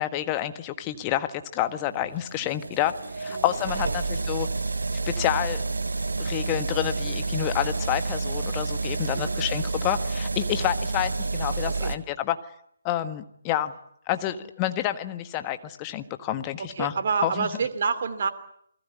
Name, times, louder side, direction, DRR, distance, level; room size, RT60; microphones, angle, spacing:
voice 1, 0.0-4.5 5.1-5.6 6.2-12.4 12.8-13.7 14.1-16.9 17.2-17.5, left 13 dB, 20° left, 9 dB, 1.6 m, -28 dB
sound 1, 1.6-12.0, right 3 dB, 65° right, 1.7 m, -29 dB
voice 2, 9.1-9.7 11.6-12.0 14.3-14.5 16.6-18.3, right 5 dB, 45° right, 9 dB, 2.8 m, -29 dB
28.5 x 21.0 x 8.5 m, 0.72 s
figure-of-eight pair, 145°, 0 cm